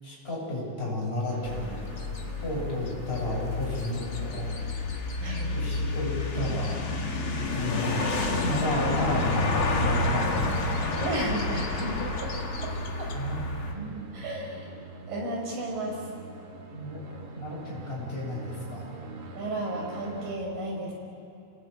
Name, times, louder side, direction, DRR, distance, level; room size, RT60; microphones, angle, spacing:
voice 1, 0.0-1.7 2.4-4.5 5.5-6.8 7.5-10.3 13.1-13.4 13.7-14.1 16.7-18.9, left 1 dB, 15° left, -5 dB, 7.8 m, -32 dB
sound 1, 1.3-20.4, right 2 dB, 40° right, 2.5 m, -44 dB
sound 2, 1.5-13.7, left 2 dB, 40° left, 2.2 m, -30 dB
voice 2, 5.2-5.6 11.0-12.3 12.6-12.7 13.0-13.1 14.1-14.7 15.1-16.0 19.3-20.9, right 1 dB, 60° right, 0 dB, 6.7 m, -33 dB
28.5 x 18.0 x 8.8 m, 2.6 s
omnidirectional pair, 4.4 m